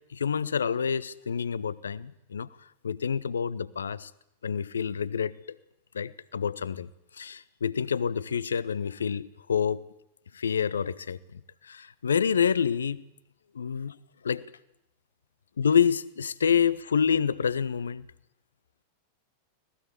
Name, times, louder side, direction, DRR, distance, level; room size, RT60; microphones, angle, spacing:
voice 1, 0.1-2.5 2.8-4.1 4.4-5.6 5.9-9.8 10.3-13.0 13.5-14.0 14.2-14.4 15.6-18.1, left 7 dB, 70° left, 0.8 m, -28 dB
25.0 x 18.5 x 8.2 m
figure-of-eight pair, 90°, 0 cm